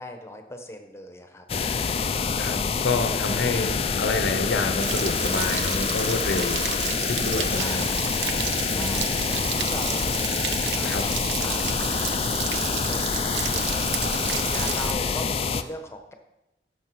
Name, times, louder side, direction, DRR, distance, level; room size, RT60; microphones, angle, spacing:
voice 1, 0.0-1.4 7.5-8.3 8.7-11.1 11.4-16.1, left 1 dB, 15° left, 5 dB, 0.9 m, -40 dB
sound 1, 1.5-15.6, left 5 dB, 35° left, 0.4 m, -26 dB
voice 2, 2.4-7.8 8.7-9.4 10.8-11.0, left 3 dB, 80° left, 7 dB, 0.8 m, -29 dB
Stream / Splash splatter / Trickle dribble, 4.8-14.9, right 9 dB, 75° right, 0.6 m, -32 dB
11.5 x 6.4 x 4.6 m, 0.92 s
head